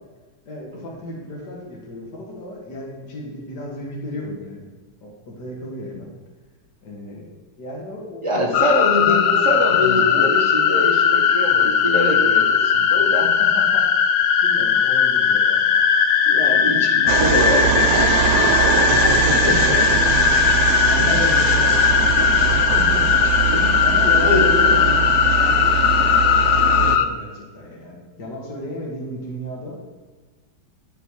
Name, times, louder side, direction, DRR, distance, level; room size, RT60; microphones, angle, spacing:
voice 1, 0.5-4.7 5.0-6.1 6.8-7.3 7.6-10.3 13.4-14.1 14.4-15.7 17.0-18.4 20.7-23.0 23.4-29.9, left 1 dB, 55° left, -2 dB, 2.4 m, -34 dB
voice 2, 8.2-13.3 16.3-20.0 21.0-21.1 23.2-23.8 24.2-24.5, left 1 dB, 20° right, -1 dB, 1.2 m, -24 dB
sound 1, 8.5-27.1, left 7 dB, 75° left, 0.8 m, -18 dB
sound 2, 17.1-27.0, right 10 dB, 85° right, 0.8 m, -22 dB
11.5 x 4.9 x 4.8 m, 1.3 s
omnidirectional pair, 2.2 m